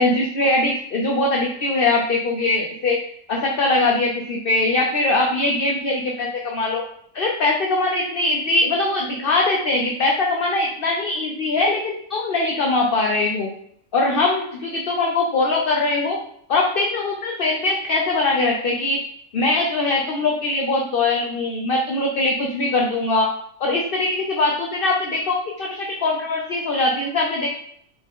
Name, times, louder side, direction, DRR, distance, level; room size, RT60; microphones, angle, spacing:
voice 1, 0.0-3.0 3.3-6.8 7.1-13.5 13.9-16.2 16.5-19.0 19.3-23.3 23.6-27.5, left 2 dB, 45° left, 0 dB, 0.9 m, -21 dB
6.5 x 5.1 x 3.7 m, 0.66 s
omnidirectional pair, 1.5 m